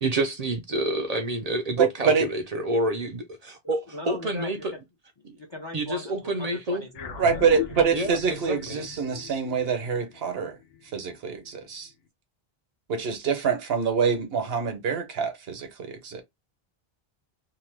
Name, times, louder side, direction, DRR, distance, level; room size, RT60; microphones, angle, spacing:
voice 1, 0.0-4.7 5.2-5.4 5.7-6.8 7.9-8.9, right 1 dB, 50° right, 0.5 m, -28 dB
voice 2, 1.8-2.3 7.2-10.6 10.9-11.9 12.9-16.2, right 6 dB, 75° right, 1.0 m, -25 dB
voice 3, 3.6-4.5 5.3-7.2 7.5-7.8, left 1 dB, 30° left, 0.5 m, -40 dB
sound 1, 6.9-11.6, left 8 dB, 80° left, 0.9 m, -39 dB
2.8 x 2.2 x 3.1 m
omnidirectional pair, 1.0 m